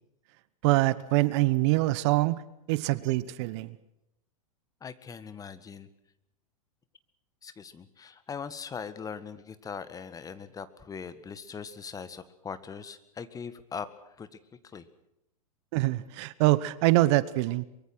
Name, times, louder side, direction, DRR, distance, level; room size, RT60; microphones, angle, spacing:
voice 1, 0.6-2.4 2.7-3.8 15.7-17.6, right 19 dB, 50° right, 18 dB, 1.1 m, -24 dB
voice 2, 4.8-5.9 7.4-14.4 14.6-14.8, left 6 dB, 20° left, 13 dB, 1.7 m, -41 dB
23.5 x 23.0 x 6.2 m, 0.84 s
hypercardioid pair, 100°, 18 cm